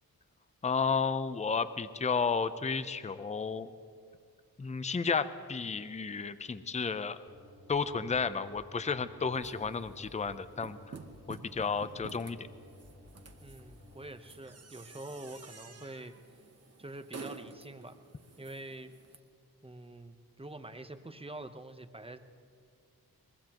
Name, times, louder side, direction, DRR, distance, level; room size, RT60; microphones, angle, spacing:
voice 1, 0.6-3.7 4.6-7.2 7.7-11.0 11.3-12.4, left 5 dB, 20° left, 13 dB, 0.5 m, -32 dB
sound 1, 7.3-14.1, left 2 dB, 35° left, 2.9 m, -55 dB
sound 2, 9.3-19.2, right 4 dB, 40° right, 1.1 m, -51 dB
voice 2, 13.4-16.1 16.8-18.0 18.4-18.9 19.6-22.2, right 2 dB, 15° right, 9 dB, 0.8 m, -45 dB
23.5 x 20.5 x 3.0 m, 2.3 s
wide cardioid pair, 75°, 38 cm